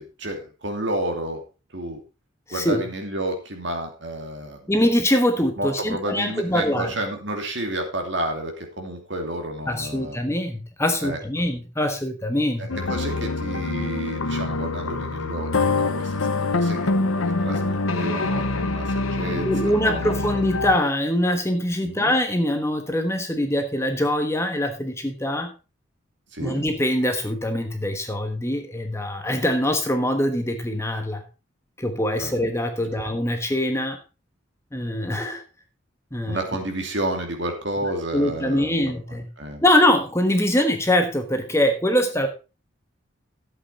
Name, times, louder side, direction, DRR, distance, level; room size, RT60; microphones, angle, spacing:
voice 1, 0.0-1.4 1.7-2.0 2.5-4.7 5.6-10.2 11.0-11.2 12.6-16.9 17.4-20.3 21.8-22.1 26.3-26.6 32.2-32.3 33.0-33.1 36.3-38.9 39.4-39.6, right 1 dB, 60° right, 3 dB, 2.6 m, -31 dB
voice 2, 2.5-2.8 4.7-7.0 9.7-12.7 19.4-25.5 26.4-31.2 31.8-34.0 34.7-35.4 36.1-36.4 38.1-39.3 39.6-42.3, left 1 dB, 15° left, 5 dB, 1.2 m, -23 dB
sound 1, 12.7-20.8, left 3 dB, 85° left, 0.9 m, -25 dB
12.5 x 8.0 x 4.1 m, 0.30 s
head